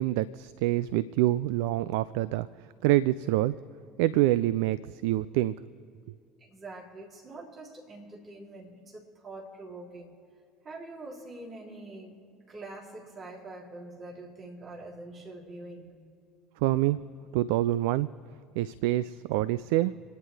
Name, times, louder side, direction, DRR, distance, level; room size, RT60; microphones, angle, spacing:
voice 1, 0.0-2.5 2.8-3.6 4.0-5.6 16.6-17.0 17.3-18.1 18.6-20.0, right 15 dB, 60° right, 16 dB, 0.3 m, -26 dB
voice 2, 6.4-10.1 10.6-16.0, right 2 dB, 35° right, -3 dB, 3.4 m, -44 dB
28.0 x 10.0 x 3.5 m, 2.3 s
figure-of-eight pair, 60°, 0 cm